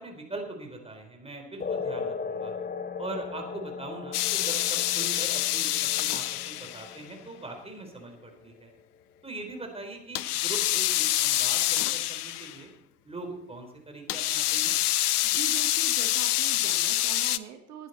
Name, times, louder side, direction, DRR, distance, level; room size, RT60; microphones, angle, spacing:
voice 1, 0.0-2.5 3.0-8.7 9.2-12.7 13.0-14.8, right 2 dB, 10° right, 3 dB, 4.1 m, -41 dB
sound 1, 1.6-8.6, left 5 dB, 20° left, 1.2 m, -38 dB
sound 2, 4.1-7.0 10.1-12.6 14.1-17.4, left 14 dB, 75° left, 0.7 m, -26 dB
voice 2, 15.2-17.9, right 8 dB, 70° right, 6 dB, 1.6 m, -42 dB
18.5 x 11.0 x 4.3 m, 0.83 s
figure-of-eight pair, 65°, 46 cm